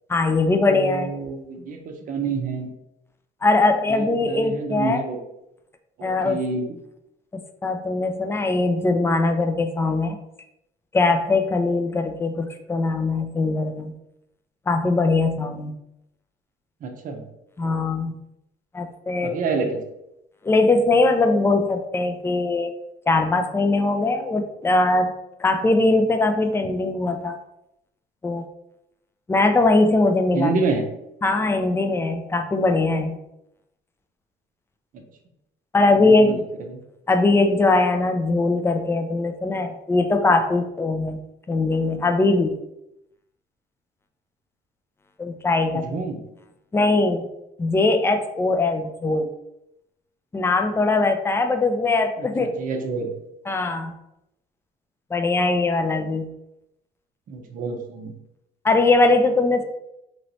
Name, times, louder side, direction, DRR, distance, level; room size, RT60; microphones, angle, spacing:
voice 1, 0.1-1.1 3.4-5.0 6.0-6.4 7.3-10.2 10.9-13.9 14.7-15.7 17.6-18.1 18.7-19.4 20.4-22.7 23.1-25.1 25.4-27.4 28.2-28.4 29.3-30.5 31.2-33.2 35.7-36.4 37.1-41.2 41.5-42.6 45.2-46.0 46.7-47.3 47.6-49.3 50.3-52.5 53.5-53.9 55.1-56.3 58.6-59.6, left 3 dB, 15° left, 6 dB, 0.4 m, -21 dB
voice 2, 0.7-2.7 3.9-5.2 6.0-6.8 16.8-17.3 19.2-19.8 30.3-30.9 34.9-35.0 36.0-36.4 36.7-36.8 45.7-46.2 52.2-53.1 57.3-58.1, right 4 dB, 50° right, 4 dB, 0.6 m, -28 dB
3.0 x 3.0 x 2.6 m, 0.84 s
cardioid pair, 110°, 17 cm